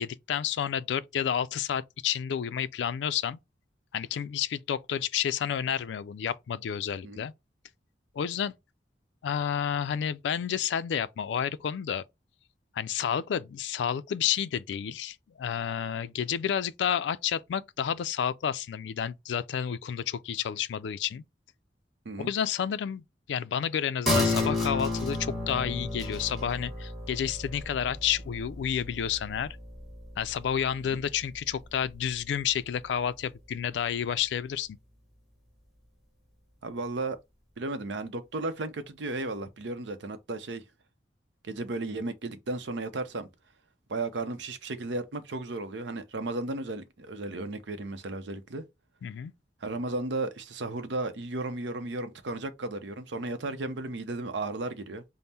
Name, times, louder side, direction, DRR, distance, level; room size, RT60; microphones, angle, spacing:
voice 1, 0.0-3.4 3.9-7.3 8.1-8.5 9.2-12.0 12.7-21.2 22.2-23.0 23.3-29.6 30.2-34.7 49.0-49.3, left 8 dB, 75° left, 0.3 m, -30 dB
sound 1, 24.1-31.1 31.4-31.5, left 2 dB, ahead, 1.4 m, -32 dB
voice 2, 36.6-37.2 37.6-40.6 41.4-43.3 43.9-48.6 49.6-55.0, right 2 dB, 80° right, 0.6 m, -34 dB
5.3 x 2.0 x 2.7 m
head